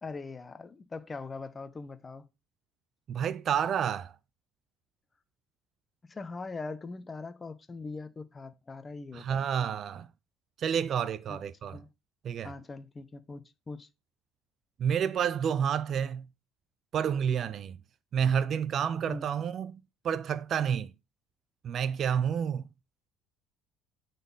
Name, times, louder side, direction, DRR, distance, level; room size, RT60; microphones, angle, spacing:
voice 1, 0.0-2.3 6.0-9.4 11.3-11.4 11.7-11.9 12.4-13.9 19.1-19.3, left 3 dB, 20° left, 1.0 m, -41 dB
voice 2, 3.1-4.1 9.1-10.1 10.6-11.8 12.2-12.5 14.8-16.3 16.9-17.8 18.1-20.9 21.6-22.7, right 8 dB, 40° right, 0.5 m, -29 dB
9.4 x 4.2 x 5.6 m
cardioid pair, 135°, 0 cm